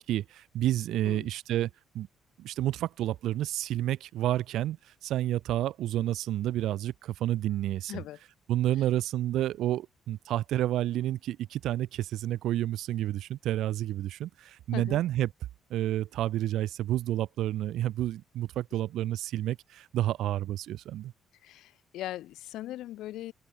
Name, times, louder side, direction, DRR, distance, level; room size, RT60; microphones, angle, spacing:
voice 1, 0.1-2.1 2.4-8.0 8.5-15.3 15.7-21.1, right 13 dB, 80° right, 0.4 m, -30 dB
voice 2, 7.9-8.2 8.8-8.9 14.7-15.0 21.4-23.3, left 14 dB, 85° left, 2.0 m, -39 dB
cardioid pair, 90°, 0 cm